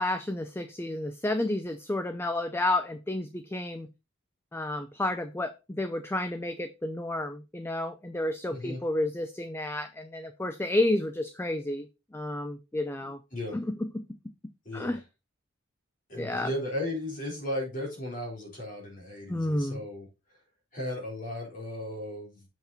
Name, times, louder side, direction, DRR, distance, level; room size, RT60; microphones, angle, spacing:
voice 1, 0.0-3.9 4.5-11.9 12.1-13.2 13.5-14.1 14.7-15.0 16.2-16.5 19.3-19.8, left 1 dB, 10° left, 0.4 m, -31 dB
voice 2, 8.5-8.8 13.0-13.6 14.6-15.0 16.1-20.1 20.7-22.5, left 1 dB, 40° left, 4.0 m, -36 dB
7.3 x 5.8 x 4.1 m
head